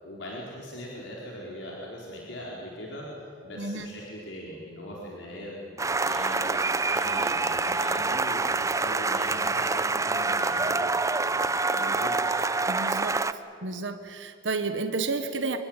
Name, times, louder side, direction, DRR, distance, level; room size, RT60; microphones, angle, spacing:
voice 1, 0.0-12.4, left 1 dB, 85° left, -4 dB, 4.5 m, -40 dB
voice 2, 3.6-3.9 12.7-13.2 13.6-15.6, right 3 dB, 85° right, 8 dB, 1.3 m, -31 dB
sound 1, 5.8-13.3, right 3 dB, 15° right, 0.6 m, -26 dB
26.0 x 22.0 x 9.0 m, 2.9 s
head